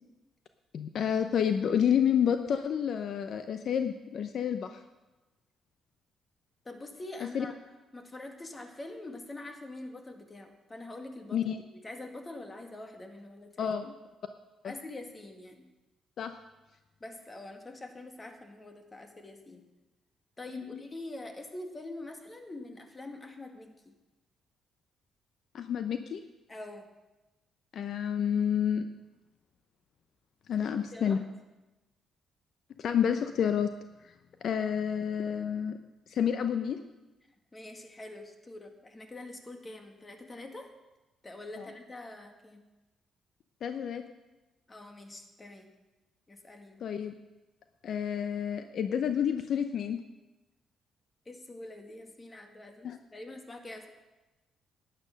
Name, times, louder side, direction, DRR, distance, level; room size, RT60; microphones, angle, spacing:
voice 1, 0.7-4.8 7.3-7.5 11.3-11.6 13.6-13.9 14.6-14.7 16.2-16.3 20.5-20.8 25.5-26.2 27.7-28.8 30.5-31.2 32.8-33.7 34.4-35.8 36.1-36.8 41.6-41.7 43.6-44.0 46.8-47.1 47.8-50.0 52.8-53.0, left 8 dB, 65° left, 8 dB, 0.6 m, -29 dB
voice 2, 6.7-7.6 7.9-11.4 11.7-13.7 14.6-15.7 17.0-19.6 20.4-24.0 26.5-26.9 30.5-31.2 37.5-40.7 41.2-42.6 44.7-45.7 46.3-46.8 51.3-53.9, left 2 dB, 25° left, 5 dB, 1.9 m, -45 dB
11.5 x 9.9 x 6.4 m, 1.1 s
cardioid pair, 90°, 0 cm